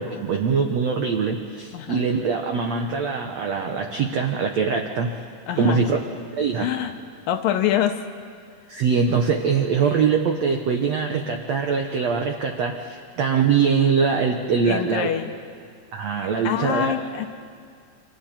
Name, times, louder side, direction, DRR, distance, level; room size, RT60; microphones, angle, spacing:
voice 1, 0.0-5.1 5.6-6.0 6.4-6.7 8.7-15.1 15.9-16.9, right 5 dB, 75° right, 3 dB, 1.5 m, -23 dB
voice 2, 5.5-5.8 6.6-6.9 7.3-8.0 14.7-15.3 16.2-17.3, left 10 dB, 75° left, 7 dB, 2.3 m, -25 dB
29.5 x 26.0 x 4.4 m, 2.2 s
omnidirectional pair, 4.6 m